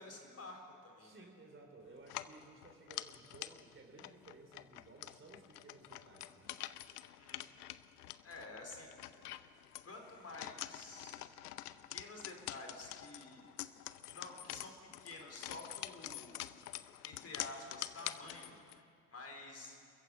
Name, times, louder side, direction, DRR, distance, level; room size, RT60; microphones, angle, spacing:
voice 1, 0.0-1.2 7.1-7.5 8.2-9.0 9.3-9.5 9.8-11.2 11.9-13.8 14.1-14.7 15.0-16.5 17.0-18.8 19.1-19.8, left 2 dB, 30° left, 2 dB, 4.5 m, -50 dB
voice 2, 1.0-6.5, right 2 dB, 25° right, 1 dB, 3.7 m, -57 dB
sound 1, 2.0-18.8, left 14 dB, 75° left, 0.7 m, -47 dB
27.5 x 15.0 x 8.3 m, 2.3 s
figure-of-eight pair, 45°, 47 cm